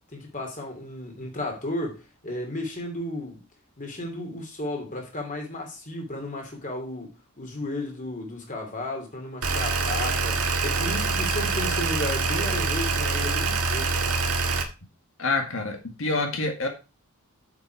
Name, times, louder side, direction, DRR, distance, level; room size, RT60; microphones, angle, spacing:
voice 1, 0.1-3.4 3.8-14.0, left 1 dB, 35° left, 3.1 m, -34 dB
sound 1, 9.4-14.6, right 3 dB, 90° right, 1.7 m, -25 dB
voice 2, 15.2-16.7, left 3 dB, 60° left, 2.0 m, -27 dB
8.1 x 7.5 x 4.7 m
head